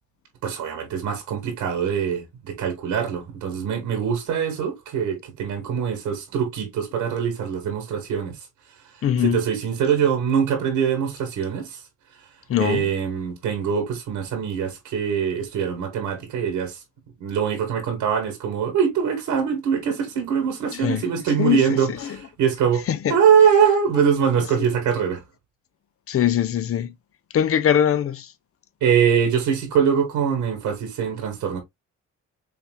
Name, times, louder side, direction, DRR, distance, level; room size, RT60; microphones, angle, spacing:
voice 1, 0.4-8.5 9.2-11.8 12.6-16.8 17.2-22.8 23.1-25.2 28.8-31.6, right 7 dB, 85° right, 1.7 m, -23 dB
voice 2, 9.0-9.4 12.5-12.9 20.8-21.1 21.4-21.8 22.9-23.2 26.1-26.9 27.3-28.3, left 10 dB, 50° left, 0.7 m, -21 dB
5.7 x 3.4 x 2.3 m
cardioid pair, 90°, 30 cm